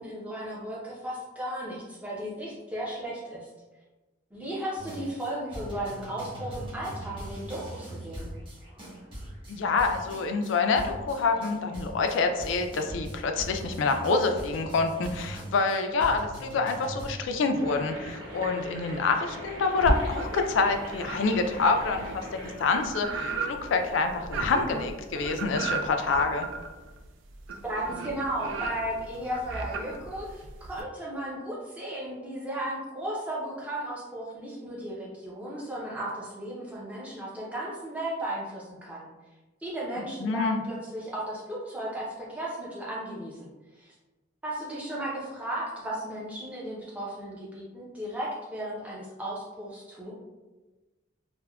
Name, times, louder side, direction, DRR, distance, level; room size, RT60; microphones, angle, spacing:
voice 1, 0.0-3.5 4.3-8.3 27.6-30.4 30.7-39.1 39.6-43.5 43.8-43.9 44.4-50.1, right 1 dB, 5° right, -6 dB, 0.5 m, -35 dB
sound 1, 4.8-17.1, right 1 dB, 25° right, 0.9 m, -41 dB
voice 2, 9.5-26.5 40.2-40.6, left 4 dB, 75° left, 5 dB, 0.3 m, -27 dB
sound 2, 17.5-22.5, equal, 90° right, 0.8 m, -41 dB
sound 3, 19.8-20.6 21.0-30.8, right 3 dB, 75° right, 0.3 m, -34 dB
3.4 x 2.1 x 2.2 m, 1.2 s
head